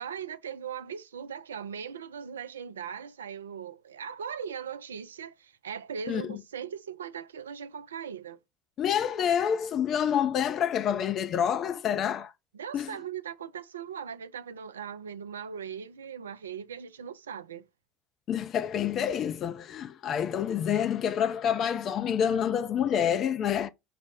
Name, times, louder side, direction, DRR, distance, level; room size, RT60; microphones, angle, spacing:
voice 1, 0.0-8.4 12.5-17.7, right 7 dB, 80° right, 0.3 m, -39 dB
voice 2, 6.1-6.4 8.8-12.3 12.7-13.0 18.3-23.7, left 8 dB, 45° left, 0.4 m, -28 dB
4.9 x 2.0 x 3.3 m
figure-of-eight pair, 65°, 0 cm